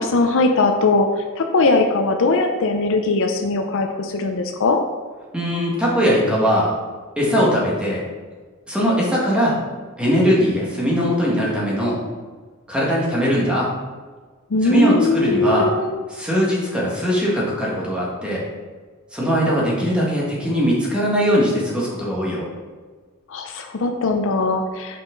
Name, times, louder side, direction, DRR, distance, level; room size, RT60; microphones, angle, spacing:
voice 1, 0.0-4.8 14.5-16.0 23.3-25.0, left 3 dB, 60° left, 5 dB, 0.5 m, -20 dB
voice 2, 5.3-6.7 7.2-8.0 8.7-9.6 10.0-12.0 12.7-13.7 14.6-15.7 16.1-18.4 19.1-22.5, equal, 5° right, -6 dB, 1.6 m, -20 dB
5.7 x 5.5 x 3.8 m, 1.4 s
head